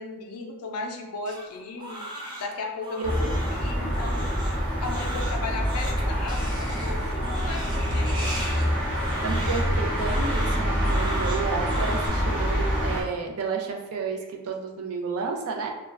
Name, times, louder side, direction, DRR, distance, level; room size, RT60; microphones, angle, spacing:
voice 1, 0.0-2.1 2.4-4.4 4.8-8.7, left 3 dB, 75° left, 2 dB, 0.5 m, -36 dB
Crying sobbing, 1.3-12.1, equal, 20° right, 0.5 m, -38 dB
sound 1, 3.0-13.0, equal, 5° left, 0.8 m, -26 dB
voice 2, 6.8-7.1 9.2-15.7, right 4 dB, 65° right, 2 dB, 0.4 m, -31 dB
2.3 x 2.1 x 3.2 m, 1.1 s
head